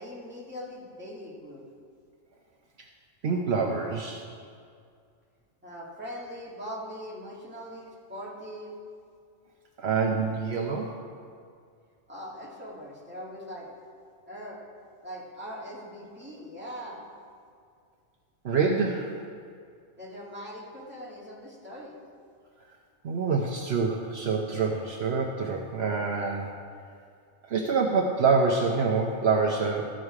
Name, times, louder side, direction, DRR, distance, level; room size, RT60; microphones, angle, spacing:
voice 1, 0.0-1.6 5.6-8.8 12.1-13.7 14.3-14.6 15.0-17.1 20.0-22.0, equal, 10° right, -5 dB, 1.9 m, -41 dB
voice 2, 3.2-4.2 9.8-10.9 18.4-19.1 23.0-26.5 27.5-29.9, right 4 dB, 65° right, 0 dB, 1.0 m, -26 dB
14.0 x 6.4 x 4.8 m, 2.3 s
omnidirectional pair, 1.2 m